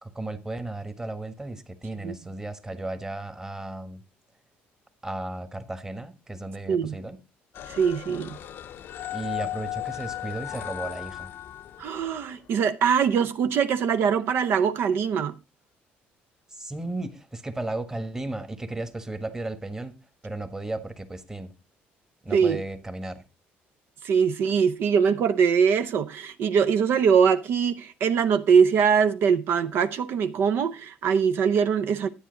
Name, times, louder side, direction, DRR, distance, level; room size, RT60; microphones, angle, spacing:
voice 1, 0.0-4.0 5.0-7.2 9.1-11.3 16.5-19.9 20.2-21.5 22.2-23.2, right 2 dB, 15° right, 1.3 m, -34 dB
sound 1, 7.5-12.4, left 13 dB, 60° left, 0.6 m, -36 dB
voice 2, 7.7-8.4 11.8-15.3 22.3-22.6 24.0-32.1, right 6 dB, 65° right, 0.7 m, -22 dB
10.0 x 9.2 x 3.9 m
cardioid pair, 110°, 4 cm